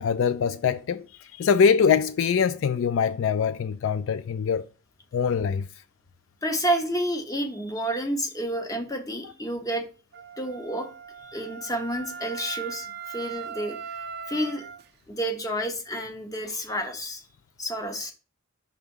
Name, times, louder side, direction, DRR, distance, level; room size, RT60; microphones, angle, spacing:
voice 1, 0.0-4.6 5.1-5.7, left 6 dB, 60° left, 0.3 m, -23 dB
voice 2, 6.4-9.8 10.4-10.9 11.3-13.8 14.3-14.7 15.1-17.2 17.6-18.1, right 1 dB, 15° left, 0.9 m, -29 dB
Wind instrument woodwind instrument, 10.1-14.8, right 6 dB, 45° right, 0.5 m, -39 dB
5.8 x 3.5 x 5.4 m
head